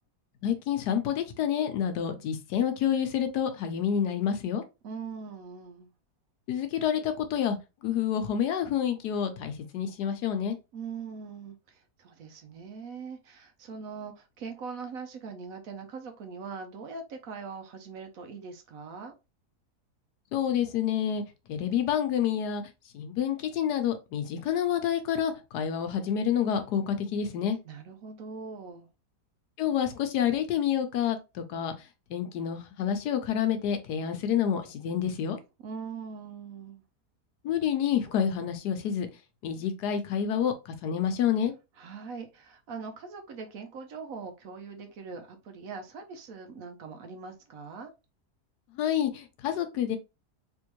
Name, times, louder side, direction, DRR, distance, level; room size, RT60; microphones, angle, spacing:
voice 1, 0.4-4.6 6.5-7.6 7.8-10.6 20.3-21.2 21.5-22.6 22.9-27.6 29.6-31.7 32.1-35.4 37.4-39.1 39.4-41.5 48.8-50.0, left 9 dB, 80° left, 1.3 m, -28 dB
voice 2, 4.8-5.9 10.7-19.1 27.6-28.9 35.6-36.8 41.8-47.9, right 5 dB, 65° right, 1.0 m, -41 dB
3.5 x 3.0 x 3.0 m
omnidirectional pair, 1.7 m